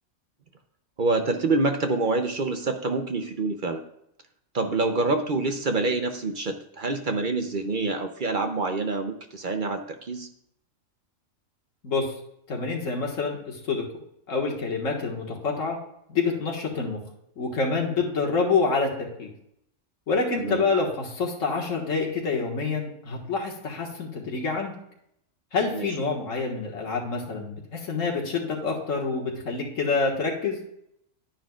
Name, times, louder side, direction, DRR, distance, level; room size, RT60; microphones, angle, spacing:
voice 1, 1.0-3.8 4.5-10.3 20.4-20.6 25.7-26.1, right 3 dB, 45° right, 6 dB, 0.7 m, -26 dB
voice 2, 12.5-13.8 14.3-15.8 16.1-17.0 17.4-19.3 20.1-24.7 25.5-30.6, left 4 dB, 70° left, -1 dB, 1.9 m, -27 dB
10.5 x 10.0 x 2.4 m, 0.76 s
omnidirectional pair, 1.4 m